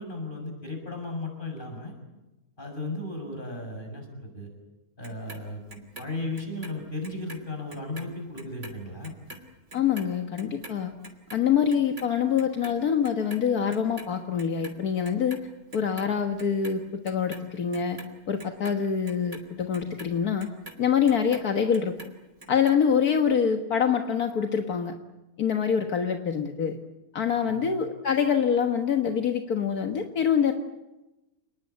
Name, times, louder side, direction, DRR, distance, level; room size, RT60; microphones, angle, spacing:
voice 1, 0.0-1.9 2.6-4.5 5.0-9.1 27.3-27.7, left 2 dB, 30° left, 3 dB, 7.0 m, -35 dB
Clock, 5.0-7.4 7.7-14.1 14.4-15.4 15.7-16.7 17.0-21.5 21.7-22.7 23.1-23.2, right 2 dB, 50° right, 3.3 m, -45 dB
voice 2, 9.7-10.9 11.3-15.4 15.7-20.5 20.8-22.1 22.5-25.0 25.4-26.8 27.1-30.5, left 7 dB, 75° left, 5 dB, 1.9 m, -25 dB
29.0 x 20.0 x 9.4 m, 1.0 s
omnidirectional pair, 1.6 m